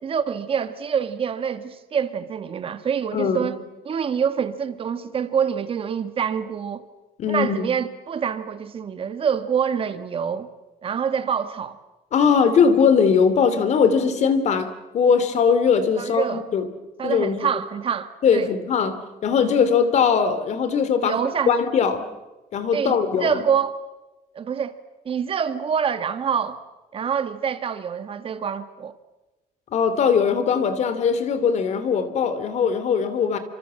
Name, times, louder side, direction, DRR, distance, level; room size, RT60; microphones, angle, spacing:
voice 1, 0.0-3.6 3.8-6.8 7.3-10.5 10.8-11.8 16.0-16.4 17.0-18.5 21.0-21.5 22.7-23.8 24.3-24.8 25.0-26.6 26.9-28.9, right 7 dB, 35° right, 1.6 m, -26 dB
voice 2, 3.1-3.5 7.2-7.7 12.1-16.7 17.0-17.5 18.2-19.0 19.2-21.2 21.5-22.0 22.5-23.4 29.7-33.4, left 6 dB, 45° left, 2.9 m, -20 dB
29.0 x 26.0 x 7.7 m
cardioid pair, 160°, 16 cm